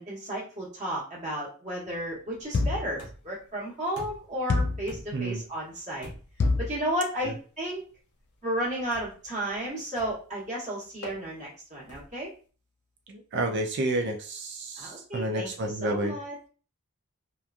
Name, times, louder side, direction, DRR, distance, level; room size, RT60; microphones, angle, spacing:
voice 1, 0.0-6.1 6.6-7.8 8.4-12.3 14.8-16.5, right 1 dB, 35° right, -5 dB, 1.2 m, -33 dB
sound 1, 2.5-3.0 4.5-4.9 6.4-6.8, left 3 dB, 50° left, 0.4 m, -25 dB
sound 2, 3.0-3.4 4.0-4.4 4.9-5.3 6.0-6.4 7.2-7.4 8.9-9.3 10.0-10.3 11.0-11.2 11.9-12.2, left 1 dB, 75° left, 0.8 m, -45 dB
voice 2, 5.1-5.4 7.2-7.3 13.1-16.2, right 1 dB, 50° right, 3 dB, 0.4 m, -30 dB
2.9 x 2.3 x 2.4 m, 0.38 s
head